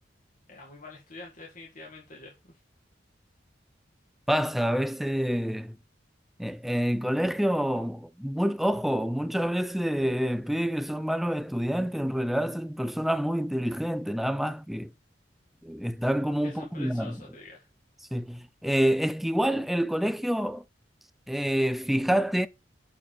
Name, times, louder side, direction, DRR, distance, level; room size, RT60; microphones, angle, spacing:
voice 1, 0.5-2.6 16.4-17.7, left 3 dB, 45° left, 2.2 m, -46 dB
voice 2, 4.3-5.8 6.4-14.9 15.6-17.2 18.1-20.6 21.3-22.5, equal, ahead, 0.5 m, -27 dB
6.7 x 6.0 x 6.2 m
head